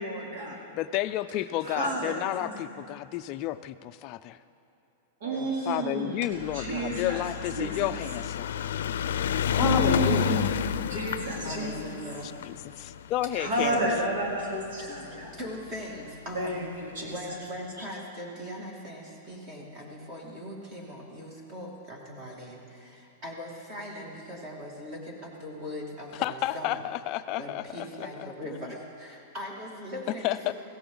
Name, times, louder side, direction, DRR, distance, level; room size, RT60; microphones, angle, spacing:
voice 1, 0.0-0.6 1.6-2.6 5.2-7.2 7.6-7.9 9.6-11.7 13.3-15.3 16.3-17.4, right 2 dB, 65° right, -3 dB, 3.3 m, -31 dB
voice 2, 0.7-4.4 5.7-8.5 9.6-10.5 12.4-13.8 26.1-27.9 28.2-28.3 30.2-30.5, left 14 dB, 30° left, 10 dB, 0.4 m, -31 dB
voice 3, 1.7-2.1 5.2-5.8 11.4-12.3 13.7-13.9 14.8-16.6 17.0-26.8 27.4-30.5, equal, 25° right, -1 dB, 2.5 m, -40 dB
sound 1, 6.4-14.8 15.7-15.8 16.0-16.1 16.3-16.4, left 9 dB, 85° left, 0.5 m, -30 dB
21.5 x 16.5 x 3.9 m, 2.8 s
supercardioid pair, 170°, 0 cm